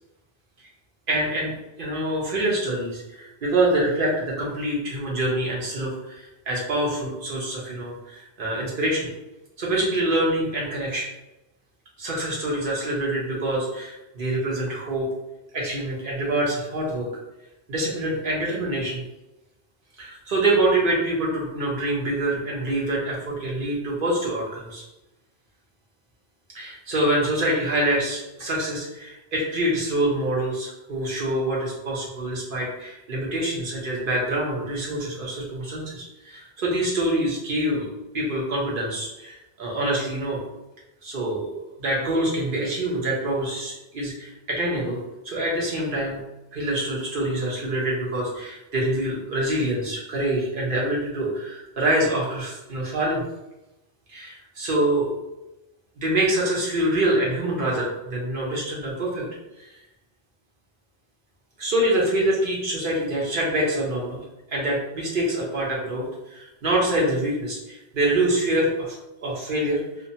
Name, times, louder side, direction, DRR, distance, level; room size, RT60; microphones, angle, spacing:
voice 1, 1.1-1.5 1.8-9.1 9.6-11.1 12.0-15.1 15.5-17.1 17.7-19.0 20.0-24.8 26.5-37.9 38.1-40.4 41.0-41.5 41.8-45.0 45.2-46.2 46.5-53.2 54.1-55.1 56.0-59.2 59.6-59.7 61.6-64.2 64.5-69.8, right 1 dB, 55° right, -4 dB, 1.0 m, -25 dB
2.7 x 2.1 x 2.7 m, 0.95 s
omnidirectional pair, 1.1 m